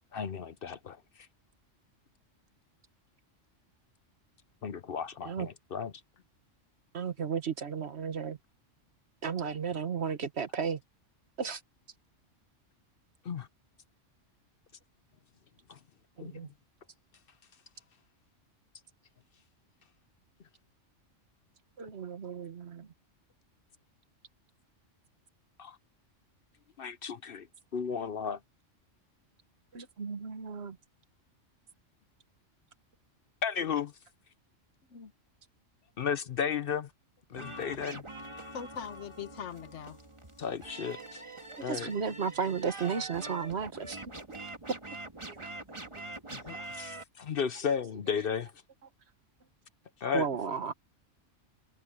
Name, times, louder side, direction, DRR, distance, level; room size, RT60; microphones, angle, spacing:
voice 1, 0.1-1.0 4.6-5.9 13.2-13.5 15.7-15.8 16.2-16.5 25.6-25.8 26.8-27.5 27.7-28.4 33.4-33.9 36.0-36.9 37.3-38.0 40.4-41.2 41.6-41.9 46.7-48.5 50.0-50.3, left 7 dB, 55° left, 0.8 m, -34 dB
voice 2, 6.9-8.4 9.2-10.8 11.4-11.6 16.2-16.5 21.8-22.9 29.7-30.8 41.5-44.0 45.3-45.5 47.4-47.5 50.1-50.7, right 6 dB, 55° right, 1.4 m, -34 dB
sound 1, 37.3-47.0, right 2 dB, 25° right, 1.8 m, -44 dB
voice 3, 38.5-40.0 45.4-45.8 46.3-46.6, left 7 dB, 70° left, 1.5 m, -42 dB
omnidirectional pair, 1.3 m